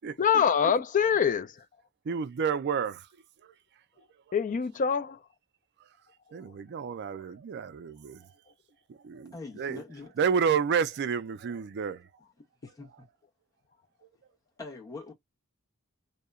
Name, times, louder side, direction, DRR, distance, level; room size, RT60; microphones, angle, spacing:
voice 1, 0.2-1.6 4.3-5.2, left 7 dB, 40° left, 0.4 m, -25 dB
voice 2, 2.0-3.1 3.4-3.5 6.3-8.3 8.9-9.8 10.2-12.1, right 6 dB, 50° right, 0.4 m, -30 dB
voice 3, 9.3-10.1 12.6-13.1 14.6-15.1, left 3 dB, 15° left, 1.0 m, -43 dB
2.8 x 2.1 x 2.3 m
head